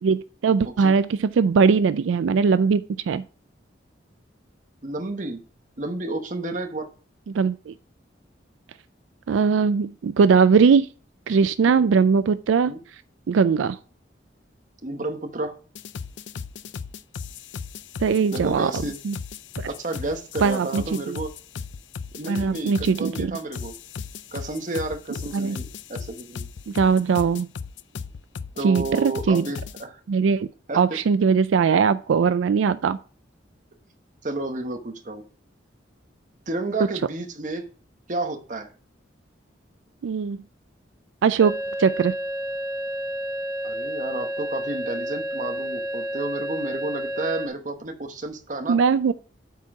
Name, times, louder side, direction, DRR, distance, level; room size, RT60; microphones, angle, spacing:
voice 1, 0.0-3.2 7.3-7.7 9.3-10.9 11.3-12.7 13.3-13.8 18.0-18.7 19.0-19.2 19.6-19.7 20.4-21.2 22.3-23.3 25.3-25.6 26.7-27.5 28.6-29.4 30.1-30.5 30.7-33.0 40.0-40.4 41.2-41.5 41.8-42.1 48.7-49.1, right 5 dB, 85° right, 0.4 m, -20 dB
voice 2, 4.8-5.4 5.8-6.9 11.6-11.9 12.6-12.8 14.8-15.6 18.3-19.0 19.7-21.3 22.1-23.7 24.3-26.5 28.6-30.0 30.7-30.8 34.2-35.2 36.5-37.7 38.1-38.7 43.6-48.8, right 2 dB, 40° right, 1.1 m, -31 dB
sound 1, 15.8-29.8, left 5 dB, 70° left, 0.4 m, -36 dB
sound 2, 41.4-47.5, equal, 10° right, 0.9 m, -30 dB
8.2 x 4.5 x 5.9 m
head